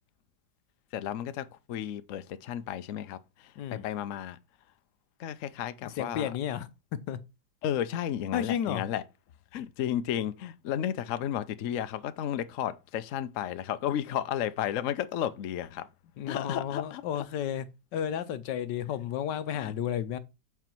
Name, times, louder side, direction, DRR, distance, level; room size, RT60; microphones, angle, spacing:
voice 1, 0.9-4.4 5.2-6.3 7.6-9.0 9.5-15.9 16.3-17.0 19.5-19.7, left 10 dB, 60° left, 0.9 m, -33 dB
voice 2, 5.8-7.2 8.3-8.8 16.2-17.7 17.9-20.2, left 9 dB, 80° left, 1.4 m, -32 dB
8.0 x 4.7 x 4.5 m
omnidirectional pair, 1.9 m